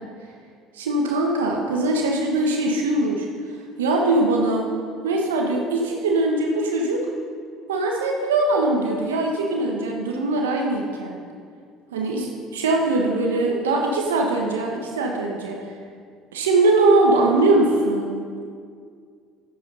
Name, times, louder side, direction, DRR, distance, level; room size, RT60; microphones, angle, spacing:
voice 1, 0.7-3.3 3.8-4.6 5.0-7.0 7.7-11.2 11.9-15.6 16.3-18.2, right 2 dB, 90° right, 0 dB, 1.2 m, -21 dB
11.5 x 9.4 x 5.4 m, 2.1 s
hypercardioid pair, 70°, 0 cm